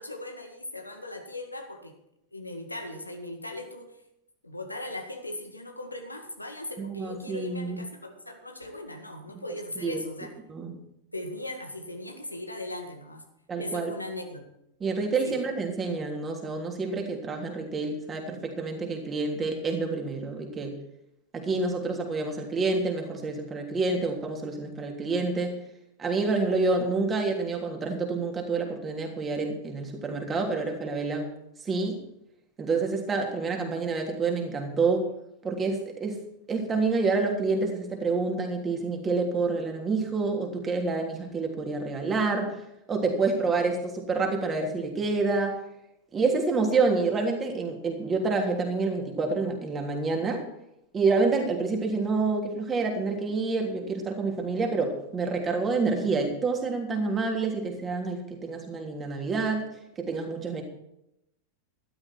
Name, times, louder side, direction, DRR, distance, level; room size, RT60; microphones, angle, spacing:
voice 1, 0.0-2.0 2.3-4.0 4.4-10.3 11.1-13.2 13.6-14.4 15.2-15.4, left 1 dB, 85° left, 4 dB, 2.0 m, -38 dB
voice 2, 6.8-7.8 9.8-10.0 10.5-10.8 13.5-13.9 14.8-20.7 21.3-25.6 26.0-31.3 31.6-32.0 32.6-35.1 35.4-36.2 36.5-42.5 42.9-45.6 46.1-50.4 50.9-59.6 60.0-60.6, right 3 dB, 20° right, 2 dB, 3.2 m, -28 dB
13.5 x 12.5 x 4.6 m, 0.82 s
figure-of-eight pair, 90°, 0 cm